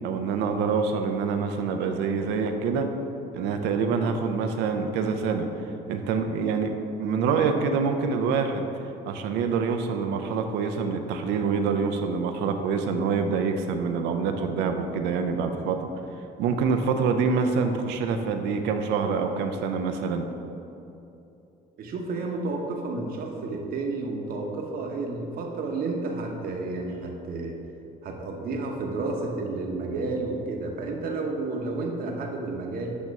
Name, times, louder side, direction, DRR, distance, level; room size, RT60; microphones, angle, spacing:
voice 1, 0.0-2.9 3.3-5.5 5.9-6.7 7.0-8.7 9.0-15.9 16.4-20.3, right 5 dB, 90° right, 6 dB, 0.6 m, -26 dB
voice 2, 21.8-27.6 28.0-33.0, right 3 dB, 60° right, 1 dB, 1.0 m, -31 dB
8.4 x 3.0 x 5.3 m, 2.8 s
cardioid pair, 110°, 17 cm